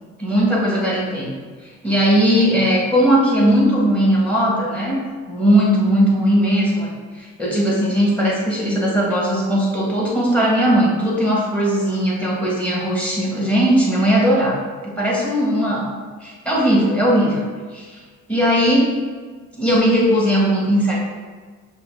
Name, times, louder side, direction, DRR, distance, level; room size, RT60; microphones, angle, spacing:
voice 1, 0.2-1.3 1.6-6.9 7.2-15.9 16.2-17.4 17.7-17.9 18.3-18.9 19.6-21.0, equal, 5° left, -4 dB, 1.5 m, -18 dB
5.8 x 2.3 x 3.5 m, 1.5 s
cardioid pair, 90°, 30 cm